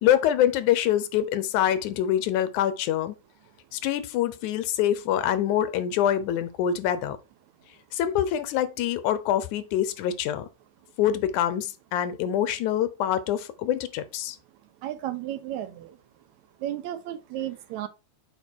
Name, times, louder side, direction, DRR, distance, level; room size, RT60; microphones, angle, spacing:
voice 1, 0.0-3.2 3.7-7.2 7.9-10.5 11.0-14.4, left 11 dB, 80° left, 2.2 m, -25 dB
voice 2, 14.8-16.0 16.6-17.9, right 12 dB, 75° right, 2.0 m, -33 dB
6.9 x 4.9 x 4.5 m
omnidirectional pair, 3.5 m